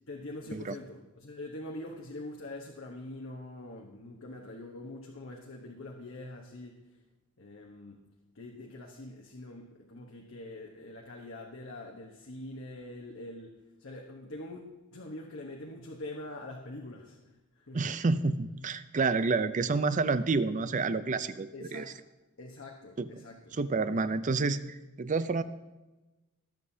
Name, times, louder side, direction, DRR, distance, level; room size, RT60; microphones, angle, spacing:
voice 1, 0.1-6.8 7.4-8.0 8.3-17.3 17.7-17.8 21.5-21.9 22.4-23.6, left 1 dB, 65° left, 0 dB, 1.0 m, -44 dB
voice 2, 17.7-21.9 23.0-23.2 23.5-25.4, right 4 dB, 35° right, 13 dB, 0.5 m, -29 dB
21.0 x 7.6 x 2.7 m, 1.1 s
head